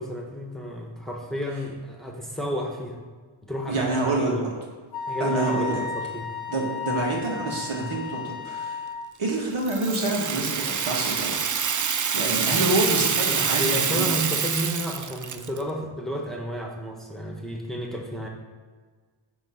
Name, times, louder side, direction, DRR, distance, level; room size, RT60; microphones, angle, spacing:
voice 1, 0.0-3.0 3.5-3.9 4.2-4.5 5.1-6.3 13.3-18.3, equal, ahead, 0 dB, 1.2 m, -31 dB
voice 2, 3.7-4.5 5.2-5.8 6.5-8.8 9.2-11.4 12.1-14.2, right 2 dB, 80° right, -2 dB, 1.7 m, -27 dB
Wind instrument woodwind instrument, 4.9-9.1, left 5 dB, 50° left, 0.8 m, -33 dB
Rattle (instrument), 9.6-15.6, right 6 dB, 40° right, 0.5 m, -26 dB
9.0 x 3.1 x 5.7 m, 1.5 s
wide cardioid pair, 55°, 49 cm